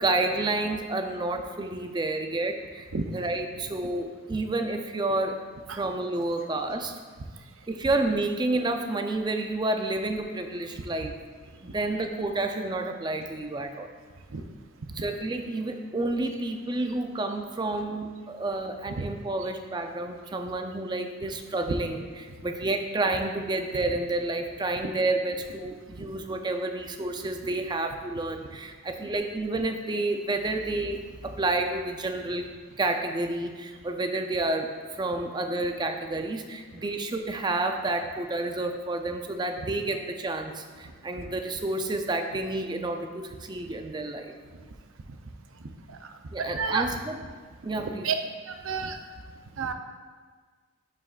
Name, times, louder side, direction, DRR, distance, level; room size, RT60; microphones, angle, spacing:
voice 1, 0.0-5.4 5.8-7.0 7.7-11.1 11.6-13.9 14.9-32.5 32.8-44.3 46.3-47.2 47.6-48.1, right 2 dB, 20° right, 5 dB, 0.4 m, -30 dB
voice 2, 46.4-46.9 48.0-48.1 48.5-49.0 49.6-49.7, right 5 dB, 90° right, 6 dB, 0.6 m, -30 dB
11.5 x 5.0 x 2.4 m, 1.5 s
head